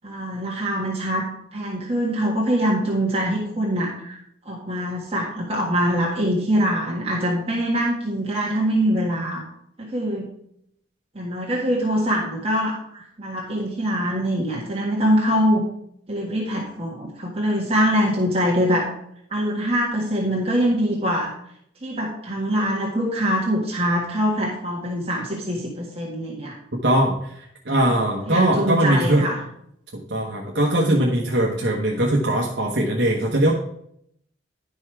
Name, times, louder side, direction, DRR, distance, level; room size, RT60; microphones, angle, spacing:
voice 1, 0.0-1.3 1.5-4.2 4.4-9.4 9.8-10.3 11.1-15.6 16.1-18.9 19.3-21.3 21.8-26.5 28.3-29.4, equal, 30° right, -4 dB, 1.6 m, -23 dB
voice 2, 26.8-27.3 27.6-29.3 29.9-33.5, right 1 dB, 60° right, -1 dB, 1.2 m, -20 dB
11.0 x 5.4 x 4.7 m, 0.72 s
head